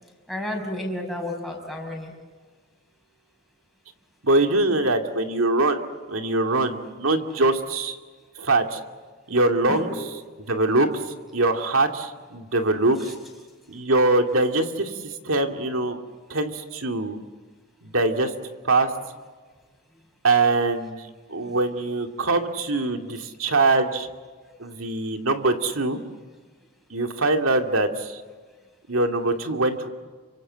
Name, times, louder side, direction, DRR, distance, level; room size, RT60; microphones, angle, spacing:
voice 1, 0.3-2.1 9.7-10.0 21.5-21.6 24.4-24.5, left 1 dB, ahead, 2 dB, 5.8 m, -31 dB
voice 2, 4.2-5.8 6.1-8.0 8.4-8.8 9.3-9.9 10.5-13.1 13.7-16.0 16.3-17.2 17.8-18.3 18.6-18.9 20.2-24.1 24.6-26.0 26.9-28.2 28.9-29.9, right 2 dB, 70° right, 5 dB, 2.5 m, -23 dB
29.0 x 25.0 x 7.6 m, 1.4 s
head